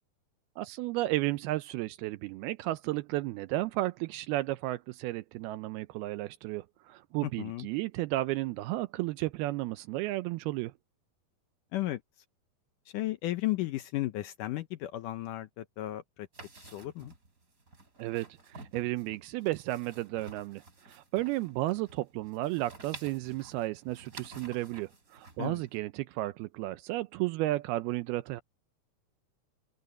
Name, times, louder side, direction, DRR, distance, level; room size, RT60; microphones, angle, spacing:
voice 1, 0.6-10.7 18.0-28.4, right 17 dB, 80° right, 2.4 m, -33 dB
voice 2, 7.2-7.7 11.7-12.0 12.9-16.3 16.6-17.1 25.4-25.6, left 16 dB, 80° left, 1.9 m, -34 dB
sound 1, 16.3-25.8, right 3 dB, 20° right, 3.6 m, -51 dB
open air
omnidirectional pair, 4.7 m